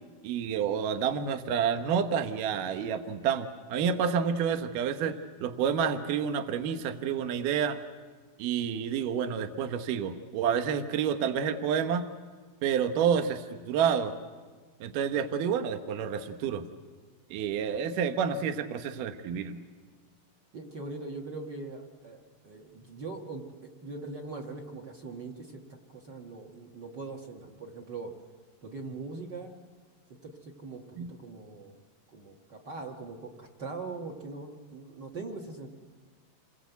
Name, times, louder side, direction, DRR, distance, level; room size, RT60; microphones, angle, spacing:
voice 1, 0.2-7.8 8.4-12.1 12.6-14.1 14.8-16.7 17.3-19.6 31.0-31.1, right 7 dB, 70° right, 8 dB, 2.6 m, -29 dB
voice 2, 20.5-28.1 28.6-29.5 30.1-31.8 32.1-35.7, right 3 dB, 40° right, 1 dB, 1.7 m, -41 dB
28.5 x 21.5 x 8.2 m, 1.5 s
omnidirectional pair, 4.3 m